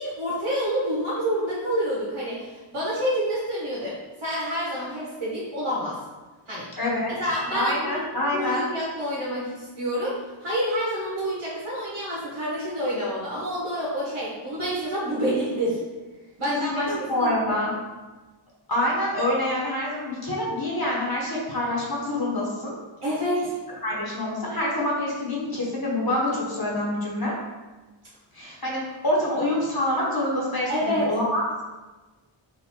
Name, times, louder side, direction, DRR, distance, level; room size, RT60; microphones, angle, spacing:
voice 1, 0.0-6.0 6.5-6.7 7.2-15.8 16.4-17.3 23.0-23.5 30.7-31.1, equal, 90° right, -8 dB, 1.1 m, -28 dB
voice 2, 6.8-7.1 7.5-8.7 16.4-17.7 18.7-22.7 23.8-27.3 28.3-31.4, left 1 dB, 50° left, -4 dB, 1.0 m, -26 dB
4.0 x 2.4 x 4.3 m, 1.2 s
wide cardioid pair, 55°, 48 cm